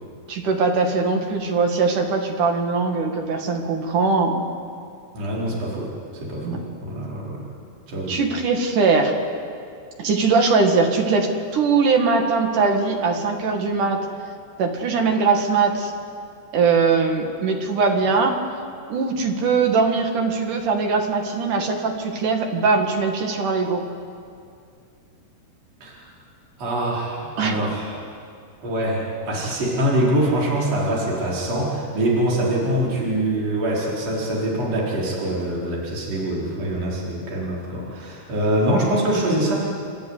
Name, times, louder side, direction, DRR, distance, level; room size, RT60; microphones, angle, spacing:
voice 1, 0.3-4.5 6.4-6.6 8.1-9.1 10.0-11.3 11.5-14.0 14.6-15.9 16.5-18.4 18.9-23.8 27.4-27.7, right 4 dB, 55° right, 3 dB, 3.1 m, -21 dB
voice 2, 5.1-5.9 6.2-7.4 7.9-8.2 25.8-26.0 26.6-27.9 28.6-39.6, right 1 dB, 40° right, -5 dB, 5.5 m, -24 dB
29.5 x 12.5 x 9.7 m, 2.3 s
omnidirectional pair, 4.8 m